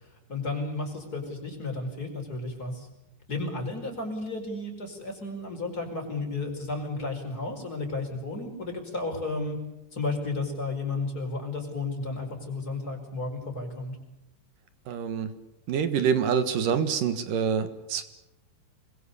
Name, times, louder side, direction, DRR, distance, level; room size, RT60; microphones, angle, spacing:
voice 1, 0.3-2.9 3.3-9.6 9.9-13.9, left 3 dB, 20° left, 2 dB, 5.1 m, -33 dB
voice 2, 14.9-15.3 15.7-18.0, right 7 dB, 60° right, 10 dB, 2.6 m, -26 dB
28.0 x 21.5 x 7.0 m, 0.89 s
omnidirectional pair, 5.1 m